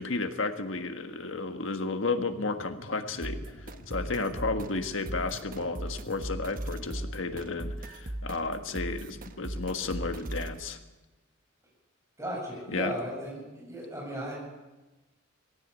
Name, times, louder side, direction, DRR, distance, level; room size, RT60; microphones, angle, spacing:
voice 1, 0.0-10.8 12.7-12.9, left 3 dB, 70° left, 7 dB, 1.6 m, -33 dB
sound 1, 2.2-7.8, left 1 dB, 90° left, 2.9 m, -49 dB
sound 2, 3.2-10.6, right 1 dB, 40° right, 1.2 m, -38 dB
voice 2, 12.2-14.3, equal, 15° right, -3 dB, 8.0 m, -36 dB
19.5 x 16.0 x 8.3 m, 1.1 s
head